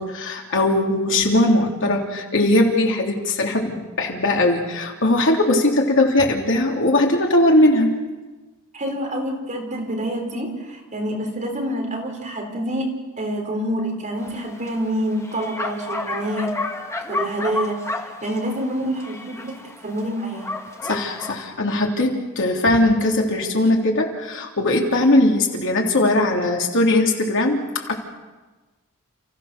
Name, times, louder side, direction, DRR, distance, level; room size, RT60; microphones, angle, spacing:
voice 1, 0.0-7.9 20.8-27.9, left 1 dB, 60° left, 1 dB, 3.2 m, -19 dB
voice 2, 8.7-12.9 13.2-16.5 17.1-20.5, right 1 dB, 35° right, 2 dB, 3.8 m, -27 dB
Bark, 14.2-21.4, left 2 dB, 15° left, 1.7 m, -31 dB
30.0 x 15.0 x 6.8 m, 1.2 s
head